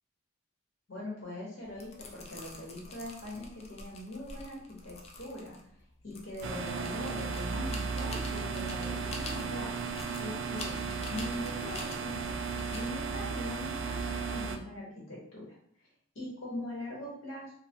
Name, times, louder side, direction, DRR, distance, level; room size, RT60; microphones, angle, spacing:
voice 1, 0.9-5.7 6.0-9.7 10.2-10.8 11.1-12.3 12.7-15.5 16.1-17.5, left 1 dB, 75° left, -5 dB, 1.4 m, -42 dB
sound 1, 1.6-14.4, left 2 dB, 30° left, 0.4 m, -48 dB
sound 2, 6.4-14.6, right 5 dB, 65° right, 0.3 m, -35 dB
3.0 x 2.2 x 2.7 m, 0.64 s
head